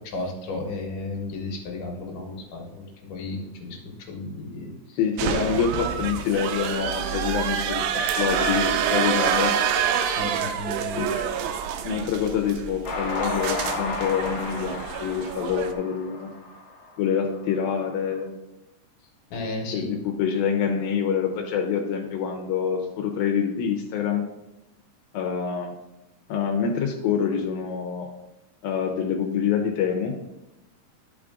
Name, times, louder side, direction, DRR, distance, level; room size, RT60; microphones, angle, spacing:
voice 1, 0.1-5.0 8.4-9.0 10.0-11.4 19.3-19.9, left 2 dB, 70° left, 0 dB, 2.9 m, -34 dB
voice 2, 5.0-7.9 8.2-9.5 11.0-11.2 11.8-16.3 17.0-18.3 19.7-24.2 25.1-25.7 26.3-28.1 28.6-30.1, left 7 dB, 85° left, 2 dB, 2.7 m, -26 dB
sound 1, 5.2-15.7, right 8 dB, 85° right, 2.4 m, -27 dB
Train, 12.8-17.2, left 2 dB, 55° left, 2.2 m, -32 dB
11.0 x 5.0 x 3.7 m, 0.93 s
omnidirectional pair, 4.1 m